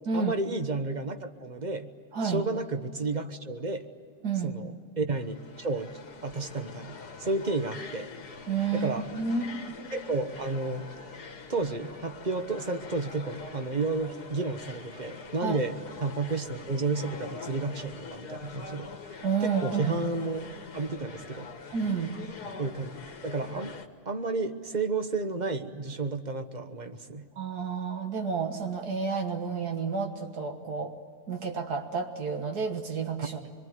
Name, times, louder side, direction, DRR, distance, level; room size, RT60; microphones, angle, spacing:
voice 1, 0.1-1.9 2.2-3.9 4.4-8.1 8.7-9.1 9.9-10.9 11.5-18.9 19.4-20.5 20.7-21.5 22.6-23.0 23.2-23.7 24.0-27.3, right 3 dB, 30° right, 8 dB, 1.1 m, -32 dB
voice 2, 2.1-2.5 4.2-4.6 8.5-9.8 15.4-15.6 19.2-20.0 21.7-22.1 27.4-30.9 31.3-33.4, right 5 dB, 75° right, 4 dB, 2.0 m, -30 dB
sound 1, 5.1-23.9, left 4 dB, 75° left, 2.1 m, -44 dB
26.0 x 22.5 x 9.4 m, 2.2 s
omnidirectional pair, 1.7 m